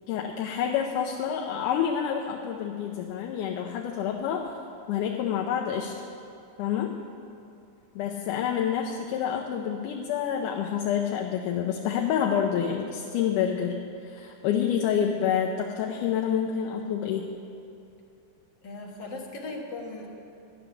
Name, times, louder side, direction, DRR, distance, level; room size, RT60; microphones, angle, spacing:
voice 1, 0.1-4.5 4.9-5.9 6.6-6.9 8.0-13.8 14.0-17.3, left 8 dB, 90° left, 0 dB, 2.3 m, -28 dB
voice 2, 18.6-20.1, left 2 dB, 50° left, -1 dB, 1.5 m, -38 dB
12.5 x 7.1 x 9.8 m, 2.6 s
omnidirectional pair, 3.6 m